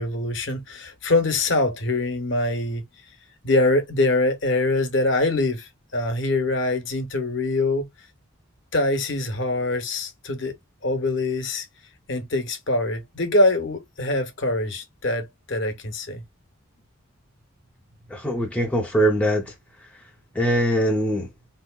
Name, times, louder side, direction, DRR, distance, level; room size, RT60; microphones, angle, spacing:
voice 1, 0.0-2.8 3.4-7.9 8.7-10.5 10.8-11.7 12.1-16.2, left 2 dB, 55° left, 0.8 m, -24 dB
voice 2, 18.1-19.4 20.4-21.3, right 1 dB, 5° left, 0.5 m, -22 dB
3.9 x 2.8 x 2.2 m
head